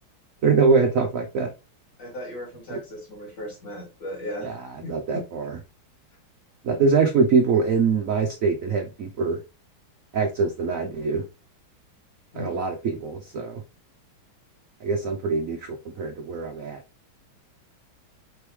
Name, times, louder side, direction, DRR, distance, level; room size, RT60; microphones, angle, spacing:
voice 1, 0.4-1.5 2.7-2.8 4.4-5.5 6.6-9.4 10.1-11.2 12.4-13.6 14.8-16.8, right 4 dB, 80° right, 0.7 m, -23 dB
voice 2, 2.0-4.6 4.8-5.2 12.3-12.6, left 1 dB, 55° left, 3.3 m, -36 dB
5.0 x 3.4 x 3.1 m
omnidirectional pair, 2.2 m